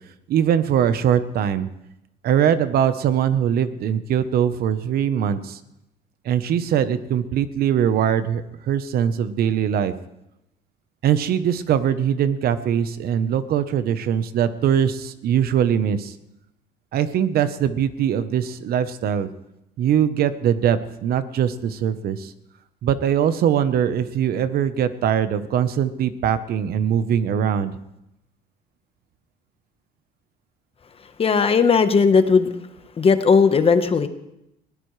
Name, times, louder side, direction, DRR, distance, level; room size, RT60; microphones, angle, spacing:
voice 1, 0.3-1.7 2.2-5.6 6.2-9.9 11.0-16.1 16.9-19.3 19.8-22.3 22.8-27.7, right 9 dB, 65° right, 12 dB, 1.0 m, -21 dB
voice 2, 31.2-32.5 33.0-34.1, left 5 dB, 35° left, 9 dB, 1.2 m, -17 dB
21.0 x 17.0 x 3.3 m, 0.87 s
cardioid pair, 110°, 17 cm